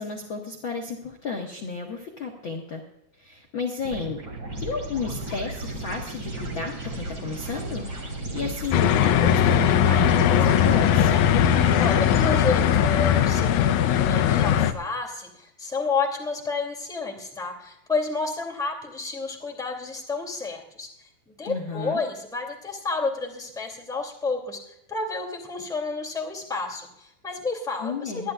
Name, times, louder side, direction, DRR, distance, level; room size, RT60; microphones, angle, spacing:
voice 1, 0.0-2.8 3.2-4.2 4.6-11.1 21.4-22.0 27.8-28.3, left 4 dB, 50° left, 0 dB, 1.8 m, -33 dB
sound 1, 3.8-13.2, right 1 dB, 30° right, 3.3 m, -35 dB
sound 2, 8.7-14.7, left 9 dB, 75° left, 2.0 m, -19 dB
voice 2, 11.8-28.3, left 4 dB, ahead, 1 dB, 2.2 m, -30 dB
23.5 x 11.0 x 2.4 m, 0.77 s
omnidirectional pair, 3.7 m